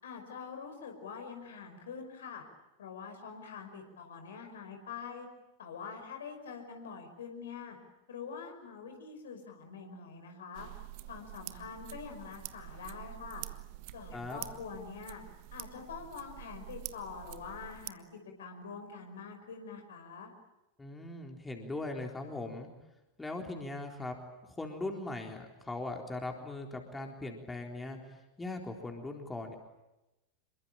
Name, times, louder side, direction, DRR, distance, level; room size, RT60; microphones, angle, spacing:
voice 1, 0.0-2.4 2.8-5.3 5.6-7.8 8.1-10.7 11.0-13.5 13.9-15.2 15.5-20.3, left 5 dB, 65° left, 5 dB, 5.4 m, -45 dB
sound 1, 10.6-17.9, right 18 dB, 45° right, 1.2 m, -47 dB
voice 2, 14.1-14.4 20.8-22.7 23.2-24.1 24.5-28.0 28.4-29.5, left 2 dB, 10° left, 2 dB, 3.8 m, -39 dB
27.5 x 23.0 x 8.9 m, 0.97 s
figure-of-eight pair, 90°, 0 cm